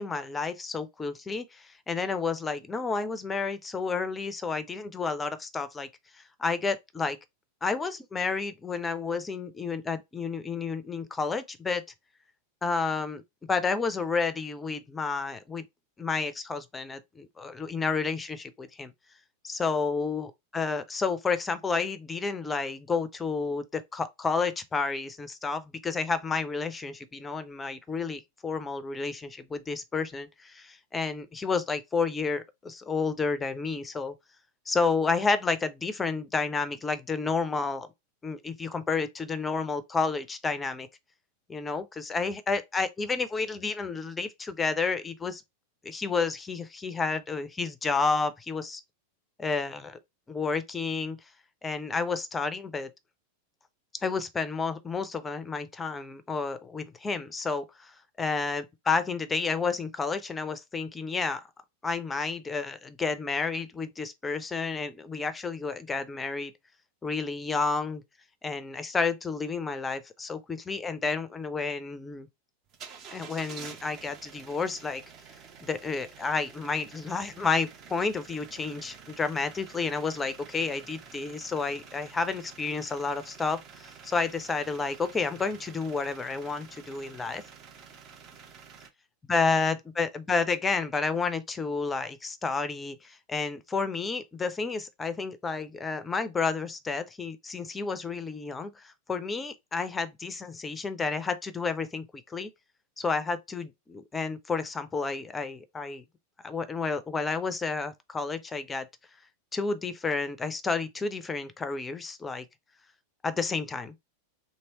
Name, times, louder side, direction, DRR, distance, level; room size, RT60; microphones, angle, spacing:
voice 1, 0.0-5.9 6.4-7.2 7.6-11.8 12.6-13.2 13.5-15.7 16.0-18.9 19.4-34.1 34.7-37.9 38.2-40.9 41.5-45.4 45.8-48.8 49.4-50.0 50.3-51.2 51.6-52.9 54.0-57.9 58.2-61.4 61.8-66.5 67.0-68.0 68.4-72.3 73.1-75.0 75.6-87.4 89.3-102.5 103.0-106.0 106.4-108.9 109.5-112.5 113.2-113.9, left 4 dB, 15° left, 0.5 m, -30 dB
sound 1, 72.7-88.9, right 6 dB, 35° right, 0.7 m, -49 dB
3.0 x 2.8 x 2.9 m
figure-of-eight pair, 90°, 0 cm